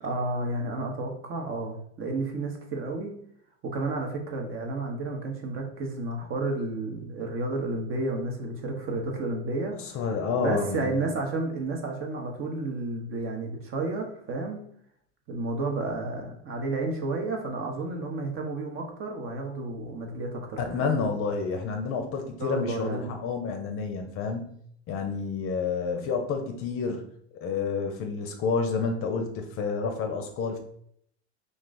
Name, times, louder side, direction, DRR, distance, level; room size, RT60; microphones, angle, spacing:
voice 1, 0.0-3.1 3.6-9.8 10.4-14.6 15.3-20.8 22.4-23.1, right 2 dB, 35° right, 2 dB, 0.8 m, -31 dB
voice 2, 9.8-10.9 20.6-24.5 24.9-27.0 27.4-30.6, left 5 dB, 40° left, 4 dB, 0.6 m, -29 dB
2.5 x 2.3 x 3.8 m, 0.67 s
hypercardioid pair, 95°, 35 cm